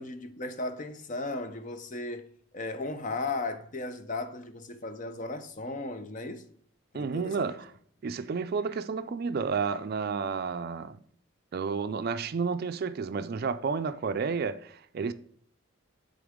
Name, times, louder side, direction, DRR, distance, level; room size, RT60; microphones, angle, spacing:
voice 1, 0.0-2.3 2.5-6.4 6.9-7.5, left 2 dB, 35° left, 0.6 m, -36 dB
voice 2, 6.9-7.7 8.0-11.0 11.5-15.1, right 5 dB, 45° right, 0.3 m, -31 dB
9.6 x 3.8 x 3.7 m
head